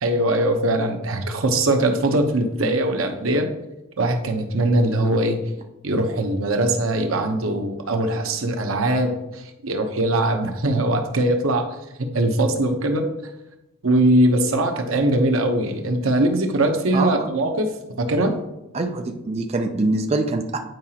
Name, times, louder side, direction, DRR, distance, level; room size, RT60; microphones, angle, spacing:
voice 1, 0.0-3.5 4.0-5.4 5.8-11.7 12.1-13.1 13.8-17.7 18.0-18.3, right 1 dB, 85° right, 5 dB, 0.9 m, -21 dB
voice 2, 16.9-17.3 18.7-20.6, right 2 dB, 30° right, 4 dB, 0.5 m, -24 dB
9.2 x 4.8 x 2.8 m, 0.94 s
head